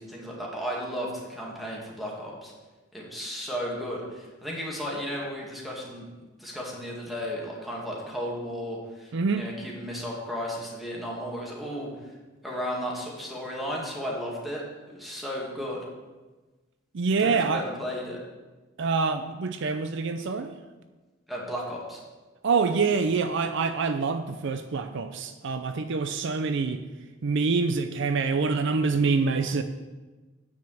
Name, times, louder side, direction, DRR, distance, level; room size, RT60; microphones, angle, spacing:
voice 1, 0.0-2.5 2.9-6.1 6.4-12.1 12.4-15.8 17.2-18.2 21.3-22.0, equal, ahead, -4 dB, 2.1 m, -34 dB
voice 2, 9.1-9.5 16.9-17.6 18.8-20.5 22.4-26.8 27.2-29.6, right 4 dB, 60° right, 9 dB, 0.5 m, -26 dB
9.4 x 4.9 x 7.3 m, 1.2 s
head